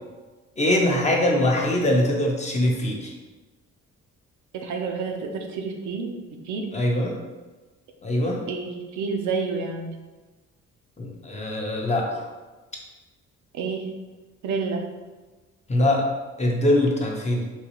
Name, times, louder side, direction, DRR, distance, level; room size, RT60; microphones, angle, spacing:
voice 1, 0.6-3.1 6.7-7.2 8.0-8.4 11.0-12.3 15.7-16.1 16.4-17.4, left 1 dB, 25° left, -1 dB, 0.6 m, -22 dB
voice 2, 4.5-6.7 8.5-9.9 13.5-13.9 14.4-14.8, right 4 dB, 75° right, 3 dB, 0.6 m, -29 dB
3.9 x 2.3 x 2.9 m, 1.2 s
cardioid pair, 90°, 30 cm